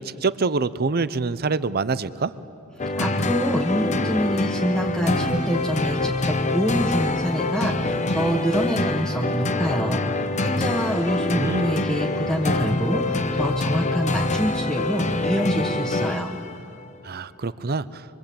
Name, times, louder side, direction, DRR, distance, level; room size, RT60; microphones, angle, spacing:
voice 1, 0.0-2.3 11.3-11.7 17.0-18.0, right 4 dB, 45° right, 16 dB, 0.7 m, -25 dB
sound 1, 2.8-16.6, left 2 dB, 30° left, 0.9 m, -25 dB
voice 2, 3.0-16.4, equal, 5° left, -3 dB, 1.5 m, -26 dB
26.5 x 24.5 x 8.8 m, 2.7 s
head